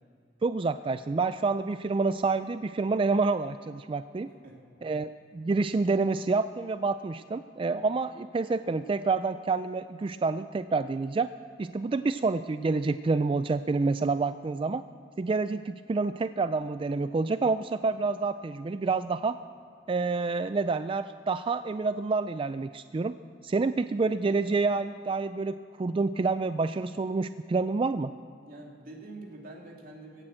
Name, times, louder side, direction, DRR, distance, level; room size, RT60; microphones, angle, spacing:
voice 1, 0.4-4.3 4.8-11.3 11.6-14.8 15.2-19.4 19.9-23.1 23.4-28.1, right 4 dB, 30° right, 12 dB, 0.3 m, -28 dB
voice 2, 28.4-30.2, right 2 dB, 55° right, 0 dB, 2.7 m, -45 dB
16.5 x 10.0 x 7.7 m, 2.5 s
head